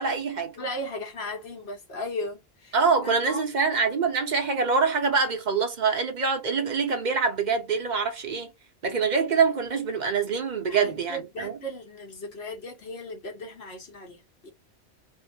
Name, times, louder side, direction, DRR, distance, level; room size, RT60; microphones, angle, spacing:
voice 1, 0.0-0.6 2.7-8.5 8.8-11.6, right 5 dB, 50° right, 0.7 m, -25 dB
voice 2, 0.6-2.8 3.0-3.4 10.7-14.5, left 1 dB, 70° left, 1.3 m, -36 dB
2.9 x 2.0 x 2.7 m
omnidirectional pair, 1.1 m